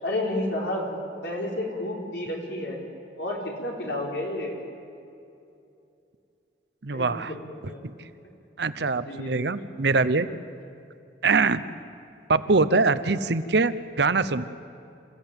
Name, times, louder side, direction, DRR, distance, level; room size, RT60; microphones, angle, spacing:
voice 1, 0.0-0.9 1.2-2.8 3.2-4.5 6.9-7.4 7.6-7.8 9.0-9.4, left 1 dB, 65° left, -1 dB, 4.3 m, -31 dB
voice 2, 6.8-7.3 7.8-7.9 8.6-10.3 11.2-11.6 12.3-14.5, right 3 dB, 65° right, 13 dB, 0.8 m, -23 dB
27.0 x 15.0 x 8.8 m, 2.6 s
head